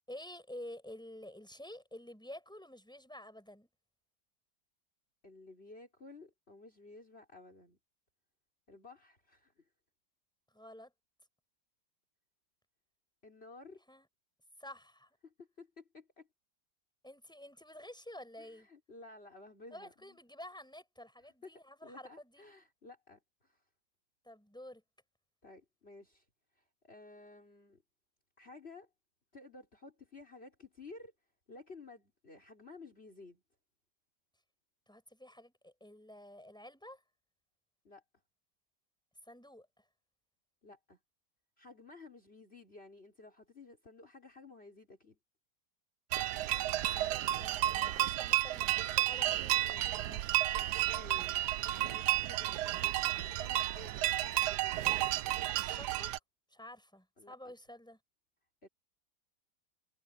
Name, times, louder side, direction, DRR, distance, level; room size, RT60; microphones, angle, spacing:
voice 1, 0.1-3.7 10.5-10.9 13.9-14.1 14.6-15.2 17.0-18.7 19.7-22.4 24.2-24.8 34.9-37.0 39.3-39.8 46.5-50.2 55.5-56.2 56.5-58.0, left 1 dB, ahead, 6.2 m, -50 dB
voice 2, 5.2-7.8 8.7-9.6 13.2-13.8 15.2-16.3 18.4-20.2 21.4-23.6 25.4-26.2 26.8-27.8 28.4-28.9 29.3-31.1 31.5-33.4 37.8-38.0 40.6-41.0 41.6-45.2 50.7-54.8 57.2-57.5 58.6-58.7, left 3 dB, 35° left, 4.3 m, -54 dB
sound 1, 46.1-56.2, right 14 dB, 75° right, 1.1 m, -32 dB
omnidirectional pair, 1.9 m